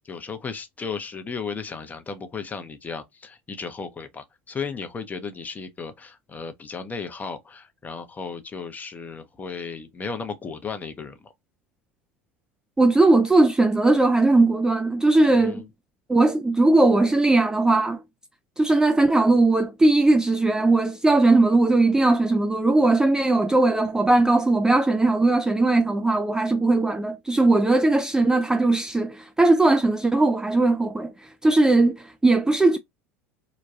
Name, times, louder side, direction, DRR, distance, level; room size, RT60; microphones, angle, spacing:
voice 1, 0.1-11.3 15.3-15.7, left 5 dB, 20° left, 0.7 m, -35 dB
voice 2, 12.8-15.6 16.1-18.0 18.6-31.1 31.4-32.8, right 2 dB, 10° right, 0.3 m, -19 dB
3.0 x 2.2 x 2.5 m
hypercardioid pair, 80°, 7 cm